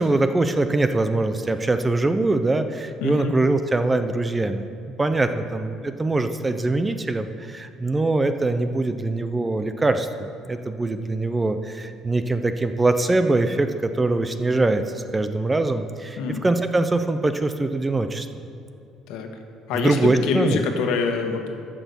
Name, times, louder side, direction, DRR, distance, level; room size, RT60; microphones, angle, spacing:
voice 1, 0.0-4.7 5.0-18.3 19.7-20.6, right 2 dB, 15° right, 9 dB, 0.4 m, -23 dB
voice 2, 3.0-3.3 16.2-16.4 19.1-19.3 19.7-21.5, left 5 dB, 80° left, 4 dB, 1.3 m, -25 dB
12.0 x 6.1 x 6.9 m, 2.6 s
cardioid pair, 160°, 0 cm